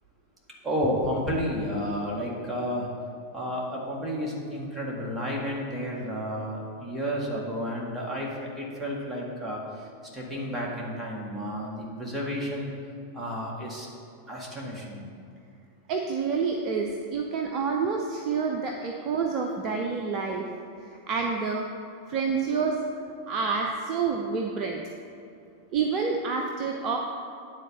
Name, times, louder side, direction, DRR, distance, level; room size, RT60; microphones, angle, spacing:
voice 1, 0.6-2.9 3.3-9.9 10.1-12.7 13.1-13.9 14.3-15.0, equal, 10° right, -4 dB, 1.9 m, -31 dB
voice 2, 15.9-20.4 21.1-21.7 22.1-22.8 23.3-24.8 25.7-27.0, right 5 dB, 35° right, 2 dB, 0.6 m, -28 dB
9.8 x 4.2 x 6.7 m, 2.5 s
figure-of-eight pair, 90°, 0 cm